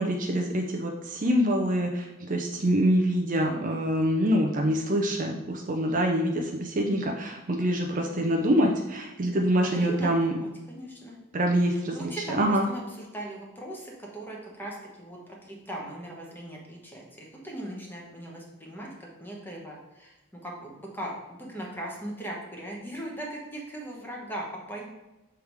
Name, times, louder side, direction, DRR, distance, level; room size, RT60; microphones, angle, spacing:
voice 1, 0.0-10.3 11.3-12.1 12.4-12.7, equal, 35° right, 2 dB, 0.5 m, -25 dB
voice 2, 9.5-11.2 11.7-18.9 19.2-20.2 20.4-24.8, right 1 dB, 10° left, -2 dB, 1.1 m, -39 dB
6.8 x 3.6 x 4.6 m, 1.1 s
head